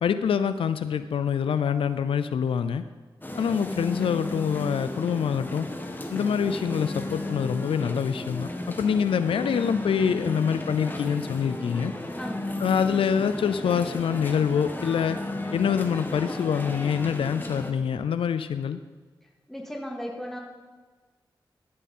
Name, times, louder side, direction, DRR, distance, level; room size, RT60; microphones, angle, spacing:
voice 1, 0.0-2.8 3.4-5.7 6.1-11.9 12.6-15.2 15.5-18.8, left 7 dB, 90° left, 12 dB, 0.4 m, -25 dB
sound 1, 3.2-17.7, left 1 dB, 20° left, 1.3 m, -34 dB
voice 2, 12.2-12.7 19.5-20.4, equal, 5° left, 0 dB, 2.2 m, -36 dB
13.5 x 7.5 x 4.2 m, 1.4 s
cardioid pair, 50°, 9 cm